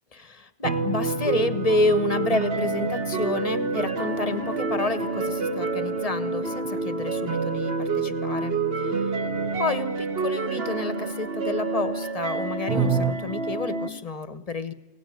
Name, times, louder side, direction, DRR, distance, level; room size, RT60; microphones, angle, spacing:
voice 1, 0.1-9.2 9.6-14.7, left 3 dB, 25° left, 13 dB, 1.0 m, -29 dB
sound 1, 0.6-13.9, right 4 dB, 40° right, 1.3 m, -28 dB
sound 2, 0.6-10.2 12.7-13.1, right 6 dB, 75° right, 1.4 m, -35 dB
23.0 x 17.5 x 9.3 m, 1.0 s
omnidirectional pair, 1.6 m